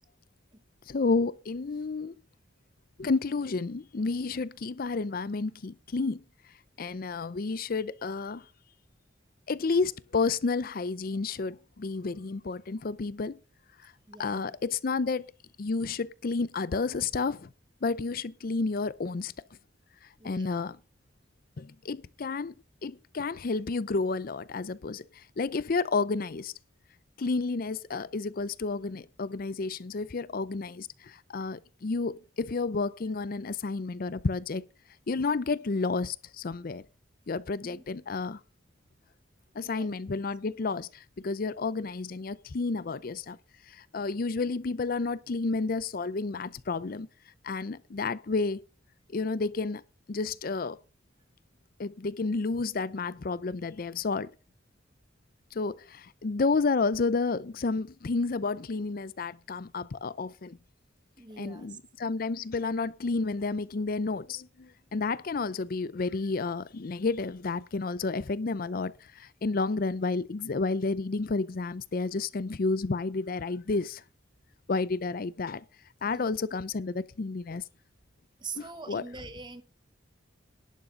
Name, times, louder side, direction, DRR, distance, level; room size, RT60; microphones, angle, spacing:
voice 1, 0.9-2.1 3.0-6.2 6.8-8.5 9.5-13.4 13.8-13.9 14.2-15.3 15.6-17.5 17.8-19.3 20.2-20.8 21.6-22.5 22.8-26.5 27.2-34.6 35.1-36.8 37.3-38.4 39.6-43.4 43.7-47.1 47.4-48.6 49.1-49.8 50.1-50.8 51.8-54.3 55.5-60.6 61.4-74.0 74.7-75.6 76.0-77.6 78.6-79.0, left 4 dB, 50° left, 0.5 m, -31 dB
voice 2, 14.1-14.6 20.2-20.6 37.6-37.8 39.5-39.9 61.2-61.8 76.0-76.3 78.4-79.6, right 4 dB, 25° right, 1.0 m, -44 dB
11.5 x 8.1 x 5.2 m
head